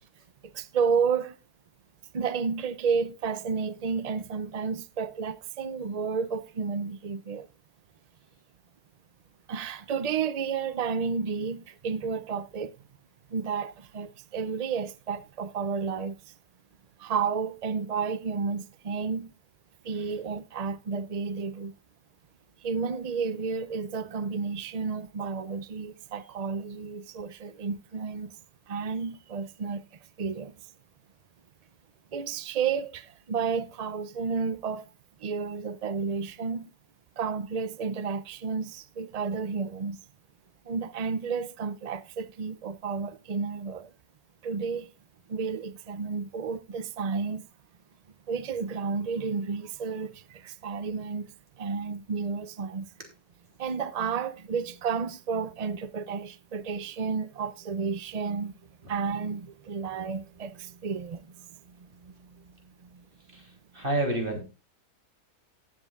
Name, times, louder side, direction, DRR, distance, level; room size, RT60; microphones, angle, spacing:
voice 1, 0.6-1.3 2.1-7.4 9.5-12.7 13.3-16.1 17.0-19.3 19.9-21.7 22.6-28.3 28.7-29.8 30.2-30.5 32.1-33.0 33.3-34.8 35.2-36.7 37.2-38.7 39.0-40.0 40.7-43.8 44.4-44.8 45.3-47.4 48.3-50.1 50.6-51.2 51.6-52.8 53.6-58.5 58.9-60.5 60.8-61.2, right 5 dB, 80° right, 0.3 m, -31 dB
voice 2, 63.7-64.4, right 1 dB, 35° right, 3.8 m, -28 dB
18.0 x 7.8 x 2.5 m
omnidirectional pair, 1.6 m